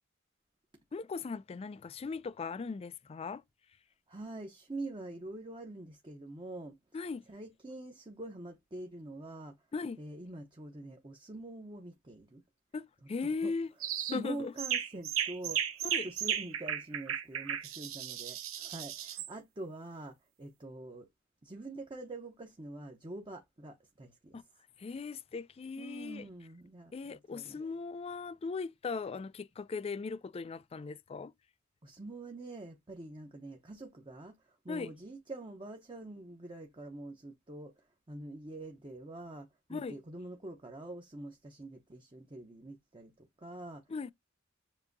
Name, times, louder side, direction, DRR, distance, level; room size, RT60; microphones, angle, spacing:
voice 1, 0.9-3.4 6.9-7.2 9.7-10.0 12.7-13.7 14.1-14.5 15.8-16.1 24.3-24.4 24.8-26.3 26.9-31.3 34.7-34.9 39.7-39.9 43.9-44.1, left 4 dB, 30° left, 0.3 m, -38 dB
voice 2, 4.1-6.8 7.3-9.6 10.0-12.4 13.2-13.5 14.1-21.1 21.4-24.4 25.8-27.6 31.8-43.8, right 2 dB, 25° right, 0.7 m, -45 dB
sound 1, 13.8-14.2 14.6-19.3, right 9 dB, 85° right, 0.8 m, -35 dB
7.3 x 2.7 x 2.6 m
head